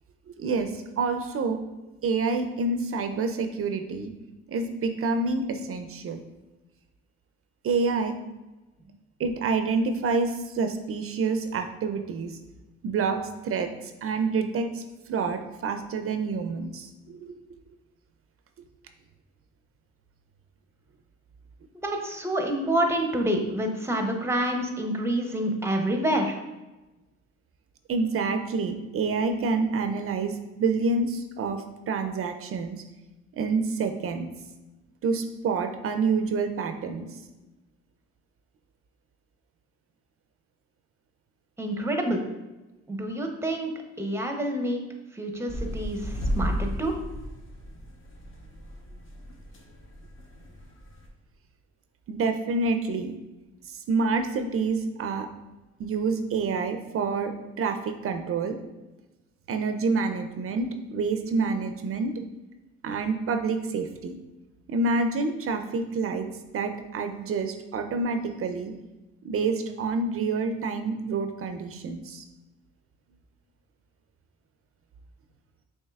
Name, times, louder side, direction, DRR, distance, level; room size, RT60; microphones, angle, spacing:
voice 1, 0.4-1.6 2.0-4.1 4.5-6.2 7.6-8.1 9.2-12.4 12.8-14.8 15.1-17.3 27.9-32.8 33.3-34.3 35.0-37.1 52.1-53.1 53.7-55.3 55.8-57.3 57.6-58.6 59.5-62.1 62.8-64.2 64.7-66.3 66.5-68.7 69.2-72.2, right 4 dB, 50° right, 7 dB, 0.4 m, -28 dB
voice 2, 21.8-26.4 41.6-42.3 42.9-44.8 45.1-47.0, right 1 dB, 10° right, 3 dB, 0.6 m, -27 dB
sound 1, 45.5-51.1, equal, 45° left, 0.9 m, -34 dB
6.4 x 2.8 x 2.3 m, 1.1 s
cardioid pair, 90°, 30 cm